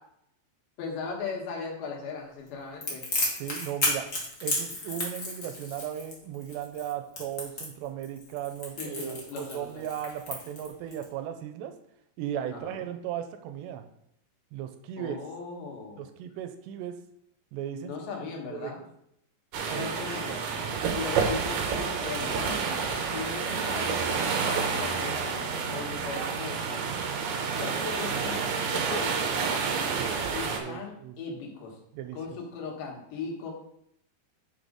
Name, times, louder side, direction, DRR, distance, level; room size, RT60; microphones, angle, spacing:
voice 1, 0.8-3.0 8.8-9.9 12.5-12.8 15.0-16.1 17.8-18.8 19.8-20.3 20.9-22.8 23.1-26.9 27.5-29.5 30.3-31.8 32.1-33.5, left 5 dB, 80° left, 0 dB, 3.8 m, -38 dB
Crackle, 2.8-11.0, left 2 dB, 65° left, 0.7 m, -33 dB
voice 2, 3.4-4.1 4.4-11.7 12.2-13.8 14.5-15.2 16.0-17.0 17.5-18.7 19.7-19.9 20.3-20.4 30.0-30.2 30.6-31.4 31.9-32.4, right 10 dB, 90° right, 8 dB, 2.9 m, -36 dB
sound 1, 19.5-30.6, right 5 dB, 70° right, 2.9 m, -29 dB
6.6 x 6.3 x 5.2 m, 0.73 s
omnidirectional pair, 5.0 m